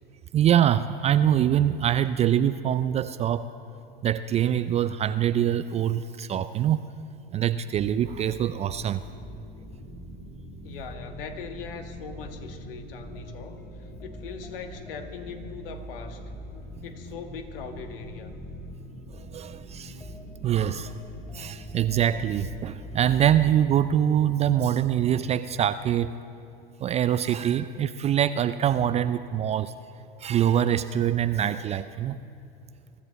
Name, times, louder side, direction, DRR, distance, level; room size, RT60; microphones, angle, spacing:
voice 1, 0.3-3.5 4.0-6.9 7.3-9.0 19.1-20.0 20.4-20.9 21.3-26.1 26.8-29.8 30.2-32.2, right 10 dB, 25° right, 13 dB, 0.3 m, -24 dB
sound 1, 7.7-24.0, equal, 5° left, 2.6 m, -42 dB
voice 2, 10.6-16.2 16.8-18.3, left 5 dB, 70° left, 6 dB, 1.6 m, -40 dB
23.5 x 13.5 x 4.1 m, 2.6 s
hypercardioid pair, 95°, 29 cm